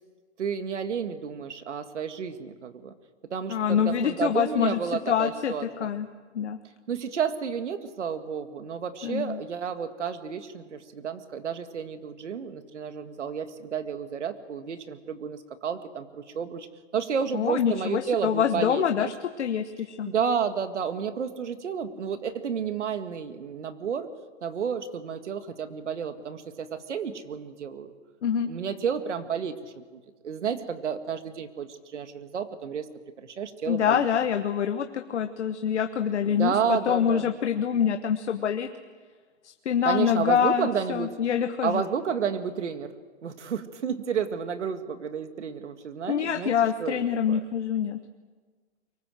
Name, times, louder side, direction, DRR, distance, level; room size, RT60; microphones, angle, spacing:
voice 1, 0.4-2.9 3.3-5.9 6.9-16.7 16.9-19.1 20.1-24.1 24.4-27.9 28.5-32.9 33.2-34.1 36.2-37.3 39.8-41.2 41.6-42.9 43.2-47.0 47.3-47.4, right 7 dB, 90° right, 9 dB, 2.0 m, -31 dB
voice 2, 3.5-4.8 5.1-5.5 5.8-6.1 6.3-6.6 9.0-9.4 17.3-20.1 28.2-28.5 33.7-38.7 39.4-41.8 46.1-48.0, left 8 dB, 75° left, 7 dB, 1.2 m, -25 dB
23.5 x 19.0 x 7.7 m, 1.5 s
hypercardioid pair, 165°, 34 cm